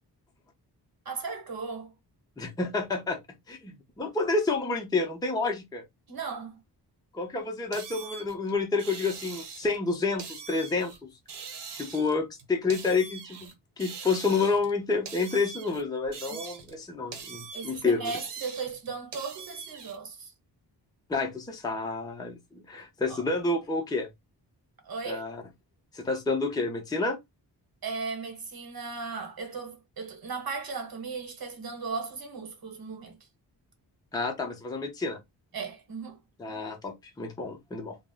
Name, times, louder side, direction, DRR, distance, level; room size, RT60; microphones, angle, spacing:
voice 1, 1.0-1.9 6.1-6.6 17.5-20.3 23.1-23.2 24.8-25.2 27.8-33.2 35.5-36.2, right 4 dB, 60° right, 1.0 m, -36 dB
voice 2, 2.4-3.2 3.5-5.8 7.1-10.9 11.8-18.1 21.1-24.1 25.1-25.4 25.9-27.2 34.1-35.2 36.4-38.0, left 3 dB, 10° left, 0.5 m, -29 dB
sound 1, 7.7-9.8 10.2-11.0 11.3-13.5 13.8-14.7 15.1-16.8 17.1-20.0, right 6 dB, 85° right, 0.8 m, -42 dB
2.3 x 2.0 x 3.5 m
wide cardioid pair, 135°, 40 cm